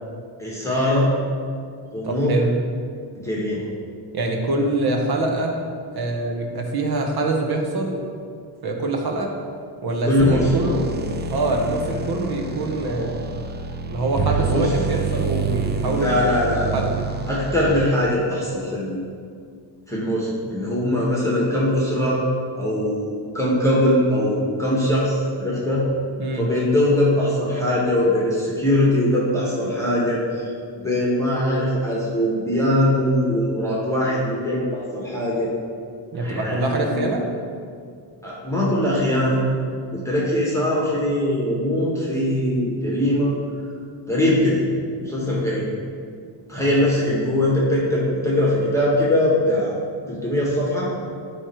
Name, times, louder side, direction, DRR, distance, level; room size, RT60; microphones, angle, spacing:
voice 1, 0.4-1.1 1.9-2.3 3.2-3.7 10.0-10.6 14.3-14.7 15.8-16.8 17.3-19.0 19.9-22.2 22.6-25.8 26.3-30.5 30.8-35.5 36.1-37.1 38.2-39.4 39.9-43.3 43.6-43.7 44.1-44.6 45.0-45.7 46.5-49.7 50.1-50.9, left 1 dB, 5° left, -6 dB, 1.5 m, -21 dB
voice 2, 2.0-2.5 4.1-5.6 5.9-8.0 8.6-9.3 9.8-10.8 11.3-13.3 13.9-16.1 16.7-16.9 26.2-26.5 36.1-37.2 46.6-46.7, right 2 dB, 50° right, 2 dB, 1.2 m, -24 dB
sound 1, 10.2-18.1, right 5 dB, 25° right, 0.4 m, -28 dB
9.6 x 3.3 x 4.5 m, 2.2 s
cardioid pair, 85°, 48 cm